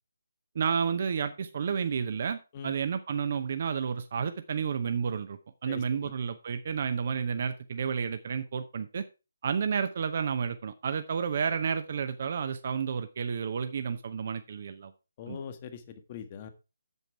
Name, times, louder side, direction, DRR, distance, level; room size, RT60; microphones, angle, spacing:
voice 1, 0.5-9.1 9.4-14.9 15.3-15.4, right 6 dB, 45° right, 9 dB, 0.7 m, -31 dB
voice 2, 5.7-6.1 15.2-16.5, left 7 dB, 30° left, 9 dB, 1.3 m, -42 dB
8.2 x 7.3 x 4.7 m, 0.30 s
figure-of-eight pair, 145°, 0 cm